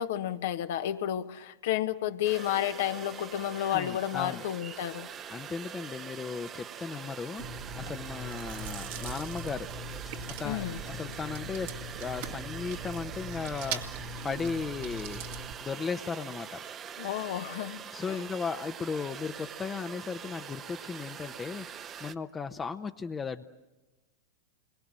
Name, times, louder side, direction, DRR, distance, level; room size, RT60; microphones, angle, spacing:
voice 1, 0.0-5.1 10.4-10.8 17.0-17.8, left 11 dB, 65° left, 1.3 m, -31 dB
sound 1, 2.2-22.1, right 8 dB, 30° right, 1.1 m, -44 dB
voice 2, 3.6-4.4 5.3-9.7 10.4-13.8 14.2-15.2 15.6-16.6 17.9-21.7 22.0-23.4, left 5 dB, 20° left, 1.0 m, -36 dB
Chewing mastication, 7.4-15.5, right 3 dB, 60° right, 2.0 m, -40 dB
29.5 x 22.0 x 7.6 m
hypercardioid pair, 95°, 0 cm